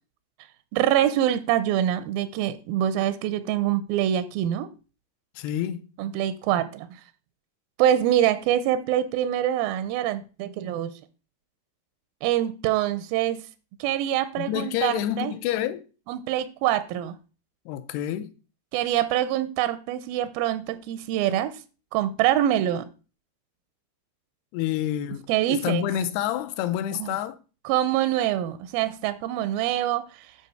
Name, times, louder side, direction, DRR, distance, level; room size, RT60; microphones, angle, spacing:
voice 1, 0.7-4.7 6.0-7.0 7.8-10.9 12.2-13.5 13.8-15.3 16.1-17.2 18.7-21.6 21.9-22.9 25.3-25.8 27.0-27.1 27.7-30.3, right 12 dB, 85° right, 2.2 m, -25 dB
voice 2, 5.4-5.9 14.4-15.9 17.7-18.4 24.5-27.4, left 11 dB, 85° left, 2.6 m, -28 dB
8.4 x 4.1 x 6.7 m
omnidirectional pair, 4.8 m